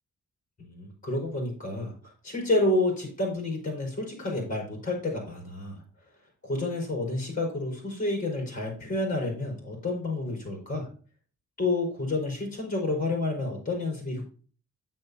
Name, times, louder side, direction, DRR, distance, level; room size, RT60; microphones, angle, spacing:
voice 1, 0.6-5.8 6.4-10.9 11.6-14.2, left 2 dB, 25° left, 0 dB, 4.7 m, -29 dB
9.1 x 8.2 x 2.8 m, 0.40 s
wide cardioid pair, 160°, 30 cm